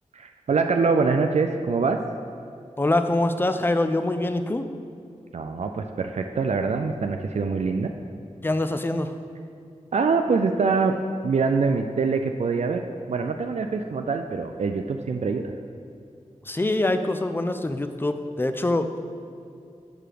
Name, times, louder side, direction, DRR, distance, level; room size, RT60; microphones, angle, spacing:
voice 1, 0.1-2.0 5.3-7.9 9.9-10.9 11.2-12.8 13.1-15.5, right 4 dB, 65° right, 5 dB, 0.4 m, -24 dB
voice 2, 2.8-4.7 8.4-9.1 16.5-18.9, left 2 dB, 15° left, 9 dB, 0.4 m, -24 dB
7.5 x 4.8 x 5.0 m, 2.5 s
wide cardioid pair, 65°, 12 cm